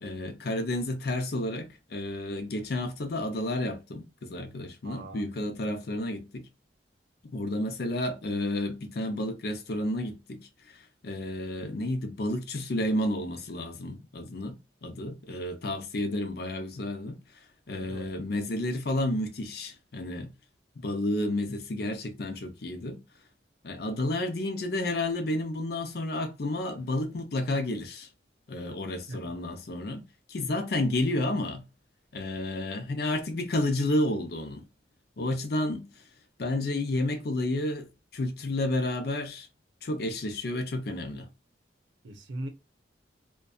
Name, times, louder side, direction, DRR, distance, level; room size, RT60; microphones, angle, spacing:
voice 1, 0.0-6.5 7.2-10.8 11.0-17.2 17.7-20.3 20.8-23.0 23.6-28.1 28.5-30.0 30.3-31.7 32.1-34.6 35.2-35.9 36.4-39.5 39.8-41.3, left 1 dB, 60° left, 0.5 m, -31 dB
voice 2, 4.8-5.7 17.7-18.1 29.1-29.2 42.0-42.5, right 1 dB, 90° right, 0.6 m, -41 dB
2.6 x 2.3 x 2.3 m
head